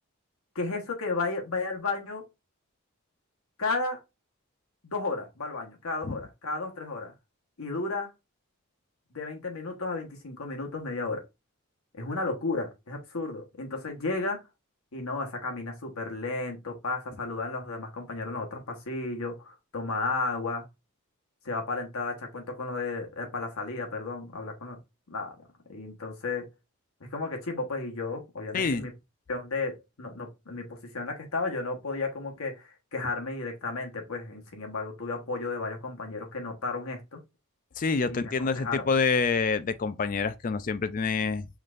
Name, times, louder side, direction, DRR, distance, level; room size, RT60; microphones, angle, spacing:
voice 1, 0.5-2.2 3.6-4.0 4.8-7.1 7.6-8.1 9.1-11.2 12.0-14.4 14.9-20.7 21.4-24.8 25.1-25.3 25.7-26.5 27.0-28.9 29.3-37.2 38.1-38.9, left 3 dB, 90° left, 1.3 m, -33 dB
voice 2, 28.5-28.9 37.8-41.5, left 4 dB, 40° left, 0.4 m, -27 dB
5.6 x 3.3 x 2.5 m
head